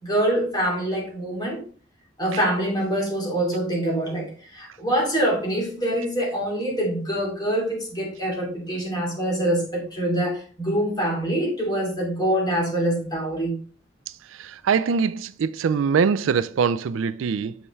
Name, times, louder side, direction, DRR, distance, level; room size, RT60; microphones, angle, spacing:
voice 1, 0.0-1.6 2.2-13.6, right 1 dB, 20° left, 2.6 m, -25 dB
voice 2, 14.4-17.5, right 6 dB, 85° right, 0.4 m, -23 dB
6.7 x 5.5 x 3.2 m
head